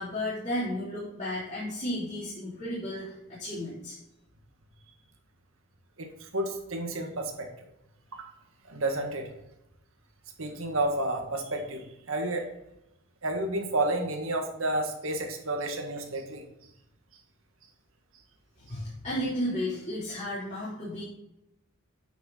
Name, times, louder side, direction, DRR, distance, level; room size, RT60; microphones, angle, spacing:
voice 1, 0.0-3.9 18.6-21.0, left 1 dB, 35° left, -10 dB, 3.3 m, -33 dB
voice 2, 6.0-7.5 8.1-8.3 8.6-9.3 10.4-12.5 13.2-16.4, right 2 dB, 75° right, 3 dB, 1.8 m, -31 dB
9.2 x 6.4 x 4.1 m, 0.87 s
head